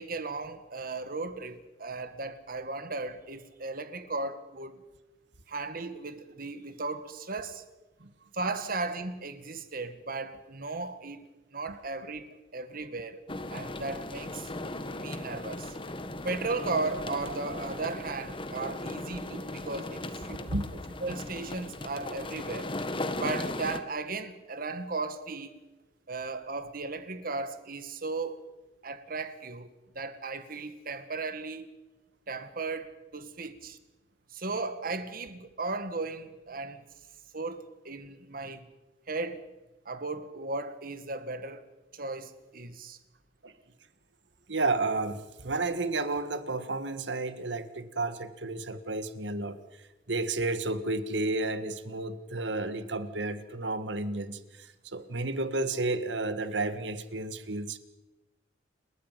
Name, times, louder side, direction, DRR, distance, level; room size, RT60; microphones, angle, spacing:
voice 1, 0.0-4.8 5.5-7.6 8.3-13.2 13.5-14.5 15.0-15.8 16.2-20.4 21.0-22.7 23.1-25.6 26.1-28.4 28.8-29.7 30.0-31.7 32.3-33.8 34.3-36.8 37.3-38.6 39.1-39.4 39.9-41.6 41.9-43.0, right 3 dB, 55° right, 1.9 m, -36 dB
sound 1, 13.3-23.8, left 1 dB, 30° left, 1.6 m, -37 dB
voice 2, 20.3-20.8 43.4-43.5 44.5-49.6 50.1-54.4 54.8-57.8, right 2 dB, 85° right, 1.8 m, -31 dB
30.0 x 13.5 x 9.5 m
head